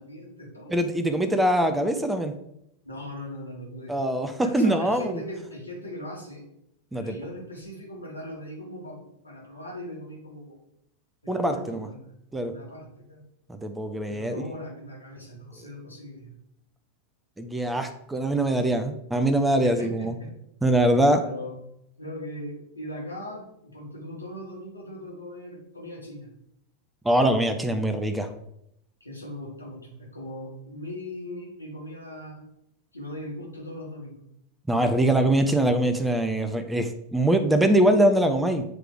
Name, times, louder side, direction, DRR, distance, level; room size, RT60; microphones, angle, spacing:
voice 1, 0.0-0.8 2.8-3.9 4.4-6.4 6.9-10.6 11.2-12.0 12.5-13.2 14.1-16.3 19.6-20.3 21.2-21.5 22.0-26.3 29.0-32.4 32.9-34.2, left 1 dB, 85° left, -2 dB, 1.7 m, -39 dB
voice 2, 0.7-2.3 3.9-5.2 6.9-7.2 11.3-11.9 12.3-12.5 13.5-14.4 17.4-20.1 20.6-21.2 27.0-28.3 34.7-38.6, right 1 dB, 5° right, 7 dB, 0.5 m, -23 dB
7.8 x 3.3 x 4.6 m, 0.78 s
figure-of-eight pair, 90°, 0 cm